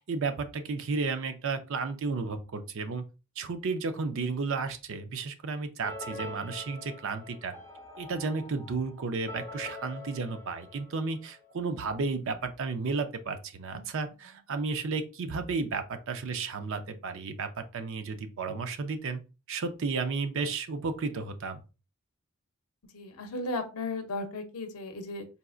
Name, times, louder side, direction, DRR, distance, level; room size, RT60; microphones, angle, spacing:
voice 1, 0.0-3.0 3.4-7.5 8.0-19.2 19.5-21.6, right 4 dB, 60° right, 9 dB, 0.5 m, -33 dB
sound 1, 5.8-11.6, left 1 dB, 15° left, 0.8 m, -44 dB
voice 2, 22.9-25.3, left 2 dB, 80° left, 7 dB, 0.6 m, -35 dB
4.0 x 2.4 x 2.4 m, 0.32 s
head